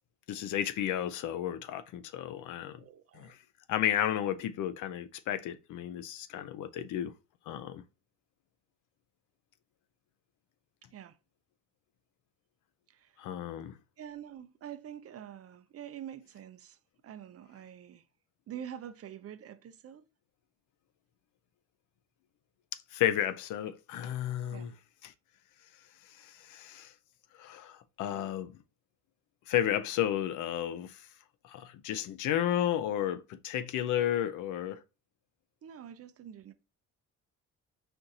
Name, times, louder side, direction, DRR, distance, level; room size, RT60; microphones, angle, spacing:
voice 1, 0.3-2.8 3.1-3.4 3.7-7.2 7.5-7.8 13.2-13.7 22.9-24.7 25.0-25.1 26.2-26.9 27.4-28.6 29.5-31.1 31.4-34.8, left 11 dB, 85° left, 0.6 m, -32 dB
voice 2, 2.8-3.4 10.9-11.2 12.9-13.2 14.0-16.8 17.0-18.0 18.5-20.0 24.5-24.7 35.6-36.5, right 9 dB, 50° right, 0.6 m, -46 dB
4.5 x 2.6 x 3.7 m
cardioid pair, 90°, 30 cm